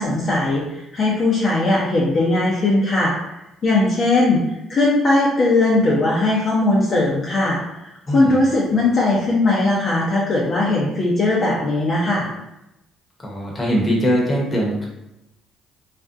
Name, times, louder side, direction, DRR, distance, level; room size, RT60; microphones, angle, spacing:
voice 1, 0.0-3.1 3.6-4.4 4.7-7.6 8.1-12.3, left 2 dB, 50° left, -5 dB, 0.6 m, -19 dB
voice 2, 8.1-8.4 13.2-14.8, equal, 25° left, -2 dB, 0.9 m, -21 dB
2.4 x 2.1 x 2.5 m, 0.90 s
hypercardioid pair, 60°, 0 cm